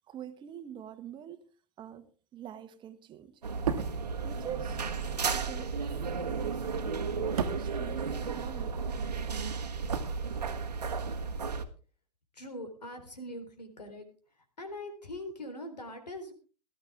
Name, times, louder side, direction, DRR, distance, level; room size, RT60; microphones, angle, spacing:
voice 1, 0.1-1.4 1.8-2.1 2.3-3.4 4.2-4.8 5.3-8.9, right 9 dB, 20° right, 1.4 m, -45 dB
sound 1, 3.4-11.6, right 5 dB, 75° right, 1.6 m, -34 dB
sound 2, 3.5-8.8 9.0-10.9 11.1-11.3, right 7 dB, 60° right, 1.6 m, -38 dB
voice 2, 12.3-14.1 14.3-16.3, left 1 dB, 75° left, 4.0 m, -42 dB
18.0 x 13.5 x 3.5 m
figure-of-eight pair, 105°, 21 cm